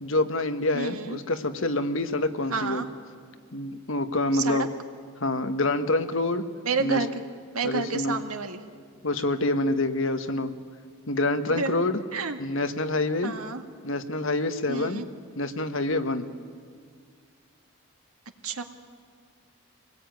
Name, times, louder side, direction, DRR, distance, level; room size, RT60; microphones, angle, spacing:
voice 1, 0.0-2.8 3.5-4.7 5.2-6.5 6.8-7.0 7.6-8.2 9.0-10.5 11.1-12.0 12.4-13.3 13.8-15.0 15.4-16.3, left 2 dB, 65° left, 9 dB, 1.4 m, -26 dB
voice 2, 0.7-1.2 2.5-2.9 4.3-4.7 6.6-7.1 7.5-8.6 11.5-11.8 12.1-12.4 13.2-13.6 14.7-15.1 18.4-18.6, right 4 dB, 85° right, 7 dB, 1.8 m, -29 dB
26.0 x 19.0 x 9.4 m, 2.1 s
head